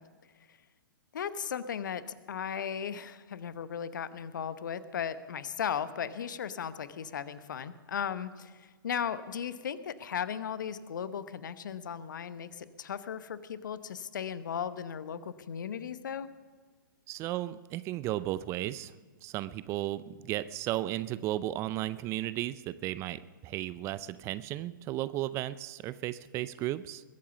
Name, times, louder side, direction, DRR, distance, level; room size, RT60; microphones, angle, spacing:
voice 1, 1.1-16.3, left 8 dB, 60° left, 14 dB, 0.9 m, -36 dB
voice 2, 17.1-18.9 19.2-27.0, right 14 dB, 25° right, 16 dB, 0.4 m, -34 dB
21.5 x 8.6 x 7.0 m, 1.4 s
figure-of-eight pair, 120°, 11 cm